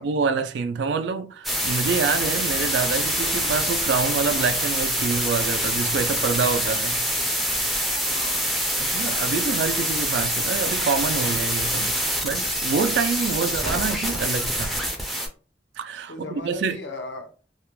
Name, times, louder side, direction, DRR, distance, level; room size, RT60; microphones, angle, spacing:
voice 1, 0.0-7.0 8.8-12.0 12.2-14.8 15.8-16.8, right 5 dB, 85° right, 0.3 m, -26 dB
sound 1, 1.4-15.3, equal, ahead, 0.3 m, -25 dB
voice 2, 8.0-8.5 13.4-13.6 16.1-17.3, left 3 dB, 85° left, 0.6 m, -38 dB
2.3 x 2.1 x 3.0 m
head